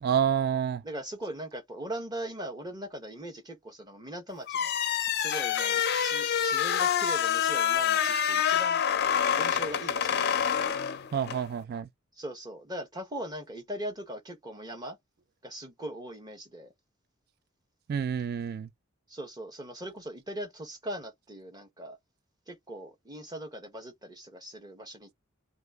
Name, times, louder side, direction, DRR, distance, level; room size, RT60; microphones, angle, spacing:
voice 1, 0.0-0.8 11.1-11.9 17.9-18.7, right 8 dB, 45° right, 0.3 m, -28 dB
voice 2, 0.8-4.7 5.1-8.8 9.3-10.8 12.1-15.0 15.4-16.7 19.1-22.0 22.5-25.1, right 1 dB, 20° right, 1.0 m, -40 dB
sound 1, 4.5-11.4, left 8 dB, 50° left, 0.4 m, -27 dB
2.8 x 2.4 x 3.5 m
head